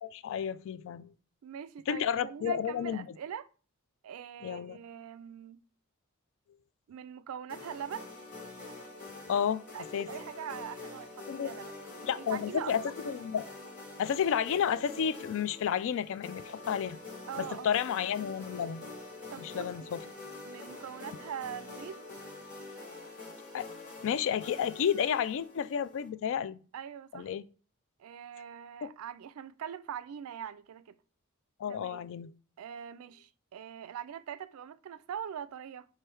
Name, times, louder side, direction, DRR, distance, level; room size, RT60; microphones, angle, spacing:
voice 1, 0.0-1.1 1.9-3.0 4.4-4.8 9.3-9.6 9.9-10.1 11.3-11.5 12.0-13.5 14.0-17.0 17.4-18.8 19.4-20.0 23.5-23.7 24.0-26.6 27.1-27.4 28.8-28.9 31.6-32.3, left 8 dB, 65° left, 0.3 m, -31 dB
voice 2, 1.4-3.5 4.0-5.6 6.9-8.1 9.7-11.9 12.2-12.9 17.3-17.7 19.3-19.9 20.4-22.1 26.7-27.3 28.0-31.0 31.7-32.1 32.6-35.9, right 8 dB, 85° right, 0.4 m, -42 dB
sound 1, 7.5-26.1, left 3 dB, 40° left, 2.3 m, -46 dB
3.7 x 3.1 x 4.6 m
head